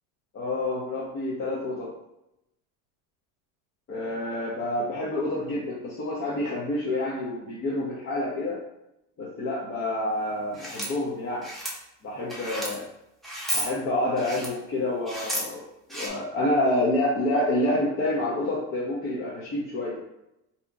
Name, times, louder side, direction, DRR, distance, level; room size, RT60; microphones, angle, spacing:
voice 1, 0.3-1.9 3.9-8.6 9.2-11.4 12.0-12.8 13.5-15.6 15.9-20.0, left 1 dB, 30° left, -7 dB, 0.7 m, -28 dB
sound 1, 10.5-10.9 11.4-11.7 12.3-12.8 13.2-13.7 14.2-14.5 15.1-15.4 15.9-16.1, equal, ahead, 0.5 m, -32 dB
3.8 x 2.8 x 2.3 m, 0.86 s
cardioid pair, 145°, 39 cm